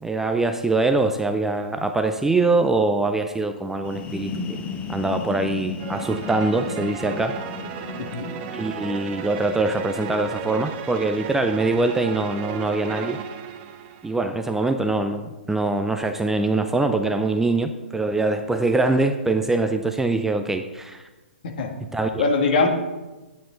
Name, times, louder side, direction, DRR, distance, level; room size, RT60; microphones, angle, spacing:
voice 1, 0.0-4.6 4.9-7.4 8.5-13.2 14.0-21.0 21.9-22.2, right 2 dB, 5° right, 7 dB, 0.4 m, -23 dB
sound 1, 3.7-11.3, left 5 dB, 25° left, 0.9 m, -36 dB
sound 2, 5.8-14.3, right 8 dB, 35° right, 0.9 m, -35 dB
voice 2, 8.0-8.3 21.4-21.7 22.2-22.7, left 4 dB, 55° left, 3 dB, 1.7 m, -22 dB
10.5 x 9.1 x 3.8 m, 1.2 s
figure-of-eight pair, 125°, 6 cm